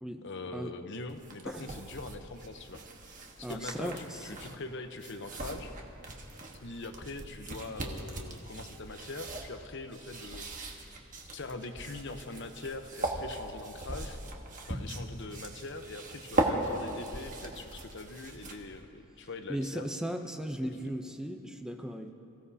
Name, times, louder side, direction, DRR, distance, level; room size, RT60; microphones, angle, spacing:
voice 1, 0.2-2.8 3.4-5.7 6.6-10.8 11.3-14.2 14.7-19.9 20.8-20.9, left 3 dB, 55° left, 7 dB, 0.8 m, -42 dB
sound 1, 1.1-18.8, right 1 dB, 35° right, 1.4 m, -39 dB
voice 2, 3.4-4.2 19.5-22.1, equal, 5° right, 5 dB, 0.6 m, -37 dB
28.0 x 16.0 x 2.8 m, 2.8 s
head